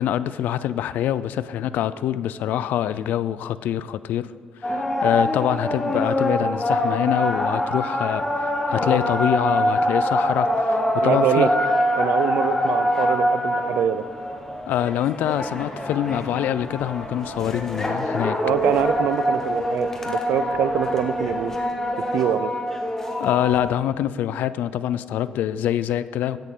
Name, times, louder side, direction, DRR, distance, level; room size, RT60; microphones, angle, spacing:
voice 1, 0.0-4.3 4.6-11.5 14.7-18.4 23.2-26.4, left 11 dB, 90° left, 15 dB, 0.4 m, -25 dB
sound 1, 4.6-23.8, left 1 dB, 15° left, 1.2 m, -24 dB
voice 2, 11.0-11.5 12.0-14.1 18.4-21.5 22.0-22.5, right 10 dB, 85° right, 13 dB, 0.6 m, -24 dB
16.0 x 10.5 x 3.8 m, 2.1 s
cardioid pair, 155°, 3 cm